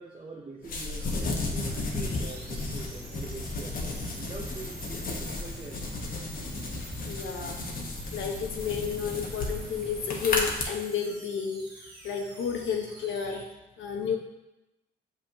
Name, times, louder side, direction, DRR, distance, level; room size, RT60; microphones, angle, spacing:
voice 1, 0.0-3.8 4.2-6.1, right 3 dB, 25° right, -2 dB, 0.7 m, -44 dB
sound 1, 0.6-10.6, left 3 dB, 45° left, 1.1 m, -34 dB
sound 2, 1.0-13.5, right 3 dB, 55° right, 1.7 m, -49 dB
sound 3, 1.6-10.2, right 1 dB, ahead, 0.9 m, -46 dB
voice 2, 7.1-7.6 8.1-11.7 12.0-13.5 13.8-14.2, left 7 dB, 75° left, 2 dB, 0.9 m, -31 dB
6.5 x 5.6 x 2.8 m, 0.96 s
cardioid pair, 90°, 20 cm